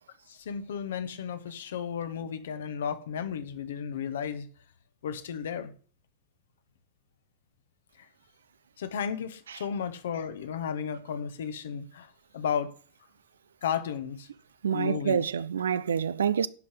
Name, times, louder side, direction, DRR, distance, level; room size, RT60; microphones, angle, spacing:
voice 1, 0.3-4.5 5.0-5.7 8.0-8.1 8.8-12.8 13.6-14.3 14.7-15.3, left 7 dB, 60° left, 1.1 m, -34 dB
voice 2, 14.6-16.5, right 8 dB, 65° right, 0.4 m, -27 dB
10.5 x 5.6 x 7.8 m
figure-of-eight pair, 90°, 0 cm